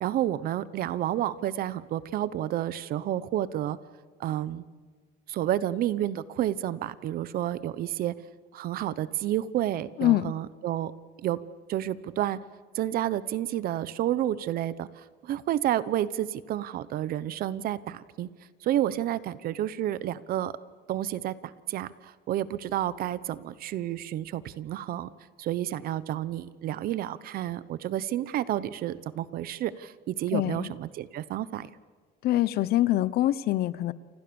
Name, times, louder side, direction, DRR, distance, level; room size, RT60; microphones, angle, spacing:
voice 1, 0.0-3.8 4.2-4.6 5.3-8.2 8.5-10.9 11.2-11.4 11.7-12.4 12.7-18.3 18.6-20.5 20.9-25.1 25.4-31.7, right 12 dB, 55° right, 17 dB, 1.0 m, -30 dB
voice 2, 10.0-10.3 30.3-30.7 32.2-33.9, left 14 dB, 60° left, 18 dB, 0.9 m, -24 dB
29.5 x 26.0 x 7.1 m, 1.5 s
cardioid pair, 160°, 18 cm